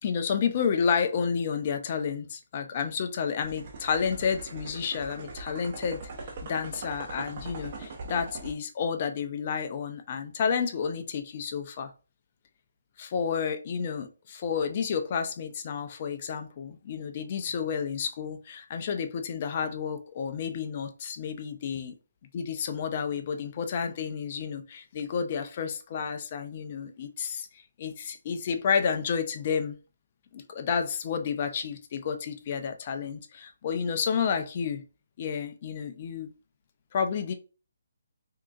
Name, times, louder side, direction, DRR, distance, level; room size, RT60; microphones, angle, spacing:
voice 1, 0.0-6.0 6.5-11.9 13.0-21.9 22.3-29.8 30.3-34.8 35.2-36.3 36.9-37.3, left 6 dB, 40° left, 0.5 m, -30 dB
sound 1, 3.4-8.5, right 3 dB, 45° right, 0.7 m, -41 dB
3.6 x 2.7 x 2.4 m
hypercardioid pair, 150°, 0 cm